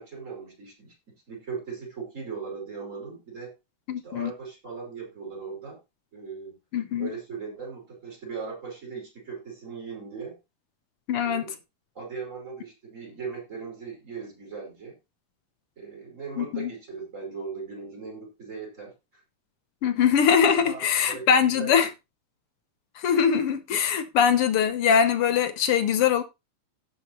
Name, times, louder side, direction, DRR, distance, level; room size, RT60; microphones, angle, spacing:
voice 1, 0.0-3.5 4.0-5.8 6.1-6.6 7.0-10.4 11.2-11.5 12.0-15.0 15.8-19.2 20.6-21.3 21.6-21.7, right 5 dB, 25° right, 5.3 m, -38 dB
voice 2, 3.9-4.3 6.7-7.1 11.1-11.5 16.4-16.7 19.8-21.9 23.0-26.2, left 7 dB, 65° left, 1.6 m, -22 dB
17.0 x 5.9 x 3.0 m
omnidirectional pair, 3.3 m